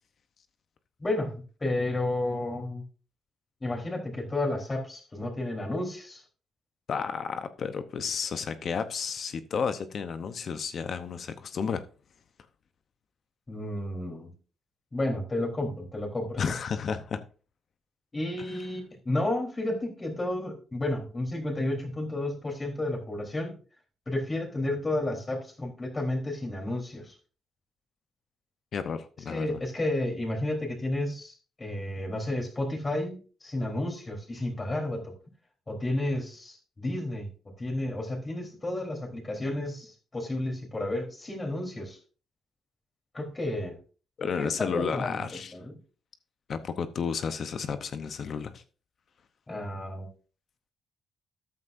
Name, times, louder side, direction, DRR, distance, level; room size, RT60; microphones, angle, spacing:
voice 1, 1.0-1.4 1.6-2.8 3.6-6.2 13.5-14.3 14.9-16.4 18.1-23.5 24.1-27.1 29.3-35.1 35.7-37.3 37.6-42.0 43.1-43.8 44.4-45.7 49.5-50.1, left 1 dB, 25° left, 3.6 m, -32 dB
voice 2, 6.9-11.8 16.4-17.2 28.7-29.6 44.2-45.5 46.5-48.6, left 6 dB, 55° left, 0.8 m, -32 dB
13.5 x 9.5 x 2.6 m
cardioid pair, 90°, 0 cm